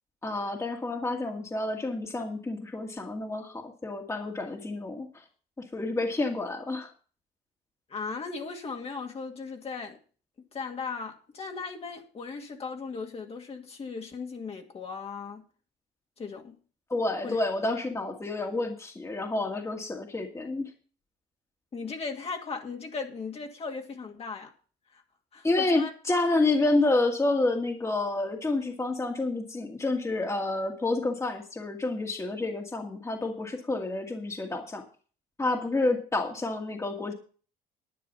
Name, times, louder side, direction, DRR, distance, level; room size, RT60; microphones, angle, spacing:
voice 1, 0.2-5.2 5.7-6.9 16.9-20.7 25.4-34.8 35.4-37.1, left 2 dB, 15° left, 2.1 m, -29 dB
voice 2, 7.9-10.0 10.5-15.4 16.2-16.6 17.2-17.4 21.7-24.5 24.9-25.0 25.3-25.9, left 4 dB, 35° left, 2.3 m, -37 dB
11.5 x 9.4 x 5.5 m
cardioid pair, 110°, 17 cm